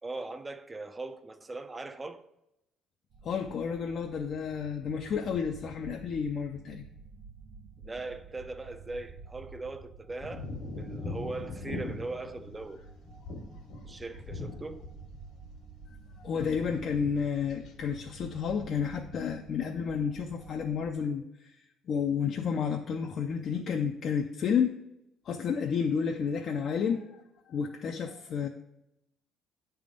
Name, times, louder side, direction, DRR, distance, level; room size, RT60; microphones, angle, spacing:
voice 1, 0.0-2.2 7.8-10.5 10.7-12.8 13.8-14.9, right 3 dB, 15° right, 0.4 m, -40 dB
sound 1, 3.1-20.9, right 5 dB, 60° right, 0.7 m, -50 dB
voice 2, 3.2-6.8 16.2-24.8 25.3-27.2 27.5-28.5, left 6 dB, 50° left, 0.4 m, -31 dB
sound 2, 10.2-15.2 15.4-16.1 16.3-17.1 17.4-17.8, left 3 dB, 75° left, 1.3 m, -40 dB
9.2 x 3.4 x 5.1 m
cardioid pair, 140°, 0 cm